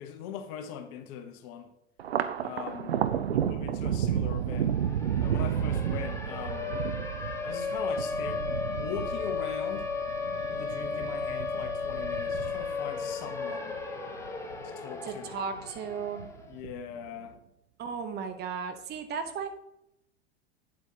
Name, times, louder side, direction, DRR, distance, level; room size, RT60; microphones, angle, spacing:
voice 1, 0.0-1.7 2.4-4.7 5.2-6.7 7.4-8.5 8.7-9.9 10.5-13.8 14.6-15.4 16.5-17.3, left 8 dB, 45° left, 1.0 m, -41 dB
Thunder, 2.0-14.7 15.0-15.9 16.2-17.0, right 9 dB, 75° right, 0.6 m, -32 dB
Siren, 4.1-4.2 4.5-16.5, left 4 dB, 10° left, 1.2 m, -35 dB
voice 2, 15.0-16.3 17.8-19.5, right 6 dB, 30° right, 1.0 m, -35 dB
8.8 x 8.0 x 2.9 m
figure-of-eight pair, 85°, 31 cm